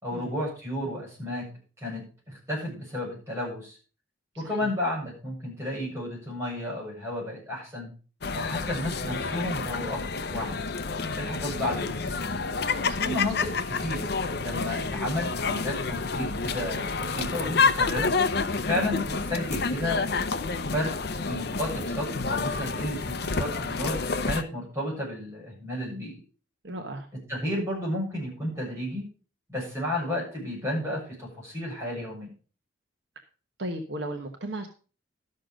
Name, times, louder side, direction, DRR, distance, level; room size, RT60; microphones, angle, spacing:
voice 1, 0.0-1.5 1.8-3.8 4.4-7.9 8.3-10.6 11.1-12.2 13.0-18.2 18.7-20.1 20.7-20.9 21.3-24.0 24.2-26.2 27.1-29.1 29.5-32.3, left 1 dB, 15° right, -5 dB, 7.0 m, -32 dB
voice 2, 4.3-4.7 12.8-13.2 26.6-27.1 33.6-34.7, right 1 dB, 60° right, 4 dB, 1.2 m, -36 dB
sound 1, 8.2-24.4, left 4 dB, 55° left, 0.7 m, -29 dB
12.5 x 6.6 x 5.1 m, 0.37 s
head